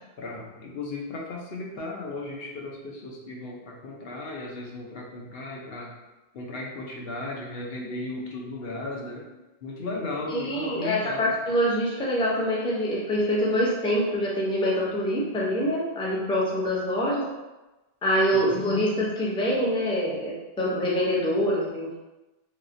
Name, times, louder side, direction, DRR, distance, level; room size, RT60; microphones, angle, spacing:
voice 1, 0.2-5.9 6.3-9.3 9.6-11.4 18.3-18.6, left 2 dB, 70° left, -1 dB, 0.9 m, -36 dB
voice 2, 10.3-17.3 18.0-22.0, equal, 10° left, -4 dB, 0.4 m, -25 dB
3.2 x 2.8 x 2.5 m, 1.1 s
omnidirectional pair, 1.0 m